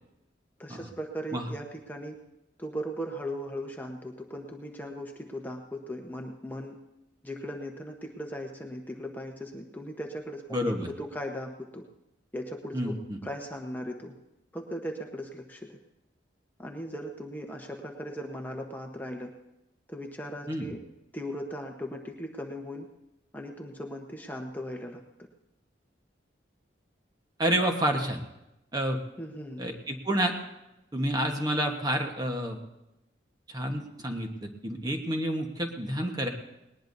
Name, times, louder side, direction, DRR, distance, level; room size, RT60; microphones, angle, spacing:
voice 1, 0.6-2.1 2.6-6.8 7.2-11.8 12.3-13.0 13.2-14.1 14.5-15.8 16.6-19.3 19.9-20.8 21.1-22.9 23.3-25.0 29.2-29.6, equal, 10° left, 2 dB, 1.0 m, -38 dB
voice 2, 10.5-10.9 12.7-13.2 20.5-20.7 27.4-28.2 28.7-29.0 29.6-30.3 30.9-32.6 33.5-36.3, right 1 dB, 20° right, 3 dB, 1.2 m, -29 dB
19.5 x 19.0 x 2.7 m, 0.93 s
head